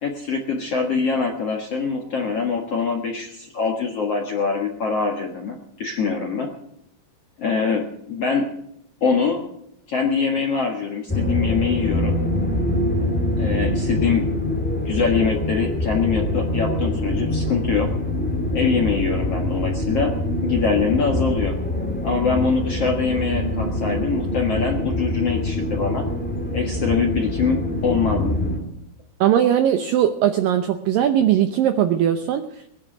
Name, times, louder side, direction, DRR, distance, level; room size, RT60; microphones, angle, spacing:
voice 1, 0.0-6.5 7.4-8.5 9.0-9.4 9.9-12.2 13.4-14.2 14.9-17.9 18.5-20.1 20.4-21.6 22.0-26.0 26.5-28.4, left 5 dB, 55° left, 1 dB, 1.8 m, -23 dB
sound 1, 11.1-28.6, left 1 dB, 5° left, 2.0 m, -24 dB
voice 2, 29.2-32.7, right 10 dB, 80° right, 7 dB, 2.0 m, -19 dB
20.0 x 11.5 x 6.2 m, 0.76 s
omnidirectional pair, 5.0 m